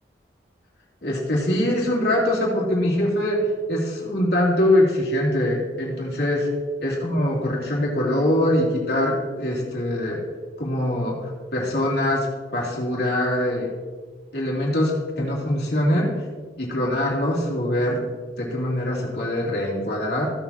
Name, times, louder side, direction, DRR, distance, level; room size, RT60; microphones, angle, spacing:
voice 1, 1.0-6.5 6.8-10.2 10.6-12.3 12.5-13.7 14.3-16.1 16.6-18.1 18.4-20.3, left 1 dB, 65° left, -4 dB, 2.9 m, -23 dB
15.5 x 7.3 x 2.9 m, 1.5 s
head